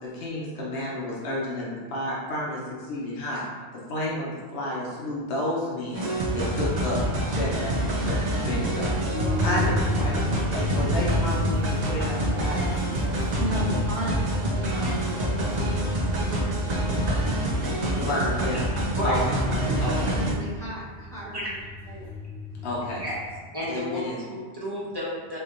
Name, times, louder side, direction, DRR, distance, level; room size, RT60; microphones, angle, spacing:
voice 1, 0.0-2.6 2.9-3.4 3.9-6.1 6.3-7.0 7.2-8.9 9.4-12.7 17.9-18.6 19.0-19.2 19.8-20.1 22.6-23.0 23.7-24.2, left 1 dB, 70° left, -5 dB, 1.0 m, -31 dB
sound 1, 5.9-20.3, right 1 dB, 50° right, 0.6 m, -26 dB
sound 2, 9.1-23.3, left 2 dB, 70° right, 1.0 m, -33 dB
voice 2, 13.4-15.7 16.2-18.2 19.5-21.5 21.9-22.1, equal, 5° left, -9 dB, 1.0 m, -37 dB
voice 3, 16.0-16.4 18.9-19.2 21.3-21.5 22.5-22.6 23.0-23.2 23.5-25.4, equal, 25° right, -8 dB, 1.0 m, -32 dB
4.3 x 2.9 x 2.5 m, 1.5 s
omnidirectional pair, 1.1 m